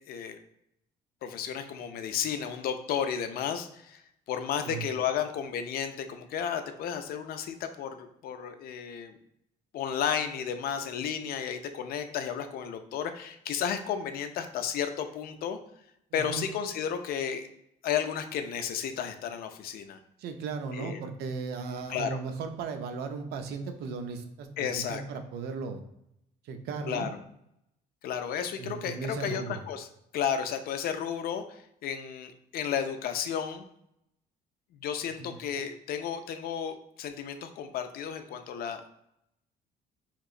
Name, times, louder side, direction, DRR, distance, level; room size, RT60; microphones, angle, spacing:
voice 1, 0.1-0.4 1.2-4.0 4.3-9.2 9.7-15.6 16.1-17.5 17.8-20.0 20.7-21.0 21.9-22.2 24.6-25.0 26.9-27.1 28.0-29.9 30.1-33.7 34.7-38.9, left 8 dB, 65° left, 8 dB, 0.4 m, -33 dB
voice 2, 16.1-16.5 20.2-25.8 26.4-27.1 28.6-29.6 35.2-35.4, right 5 dB, 75° right, 6 dB, 0.5 m, -36 dB
3.7 x 3.0 x 2.4 m, 0.78 s
cardioid pair, 110°, 17 cm